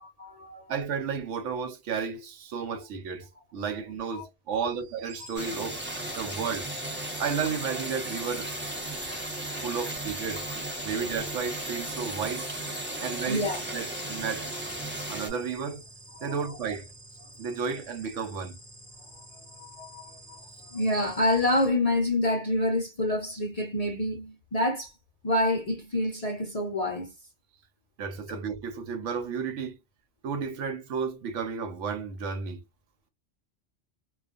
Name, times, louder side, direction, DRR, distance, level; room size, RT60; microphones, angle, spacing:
voice 1, 0.0-0.7 2.7-2.8 4.1-4.3 6.2-6.3 11.9-12.1 12.8-13.6 13.9-14.0 14.8-14.9 16.2-16.3 19.0-24.9 25.2-27.1 28.3-28.4, left 1 dB, 50° left, 0.5 m, -28 dB
voice 2, 0.7-5.8 6.1-6.7 7.2-8.5 9.6-10.5 10.8-12.5 13.0-13.4 13.7-14.5 15.1-15.8 16.2-16.9 17.4-18.6 28.0-29.8 30.2-32.6, right 6 dB, 80° right, 0.9 m, -32 dB
sound 1, 4.5-21.7, right 3 dB, 55° right, 1.1 m, -47 dB
sound 2, 5.4-15.3, right 1 dB, 10° right, 0.7 m, -35 dB
2.3 x 2.3 x 2.4 m
omnidirectional pair, 1.3 m